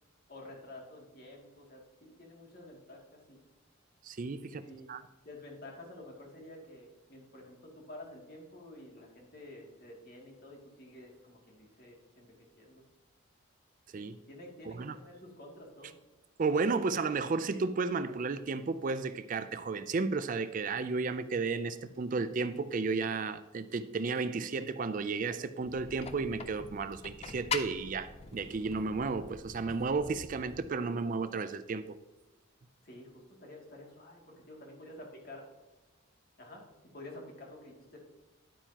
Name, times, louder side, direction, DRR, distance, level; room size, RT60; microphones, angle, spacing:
voice 1, 0.3-3.4 4.5-4.9 5.2-12.8 14.3-15.9 32.8-35.5 36.4-36.6 36.9-38.0, left 1 dB, 45° left, -1 dB, 2.5 m, -50 dB
voice 2, 4.0-4.6 4.9-5.0 13.9-14.2 14.7-15.0 16.4-32.0, right 4 dB, 40° right, 12 dB, 0.4 m, -33 dB
sound 1, 25.6-30.7, left 5 dB, 30° left, 0.4 m, -43 dB
10.5 x 8.9 x 2.9 m, 1.1 s
head